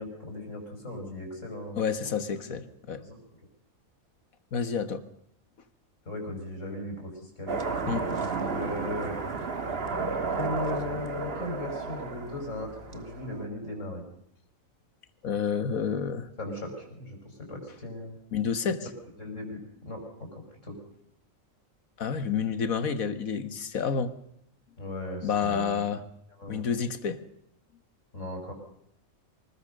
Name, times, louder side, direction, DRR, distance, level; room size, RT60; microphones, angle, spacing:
voice 1, 0.0-2.2 3.0-3.2 6.1-7.5 8.5-9.2 10.4-14.0 16.4-18.2 19.2-19.6 19.9-20.8 24.8-25.8 26.4-26.7 28.1-28.5, left 1 dB, 60° left, 3 dB, 5.8 m, -37 dB
voice 2, 1.8-3.0 4.5-5.0 7.9-8.1 15.2-16.3 18.3-18.9 22.0-24.1 25.2-26.0 26.5-27.2, left 6 dB, 85° left, 12 dB, 1.8 m, -29 dB
sound 1, 7.5-13.4, right 4 dB, 45° right, 1.8 m, -32 dB
24.5 x 20.0 x 6.6 m, 0.73 s
omnidirectional pair, 1.4 m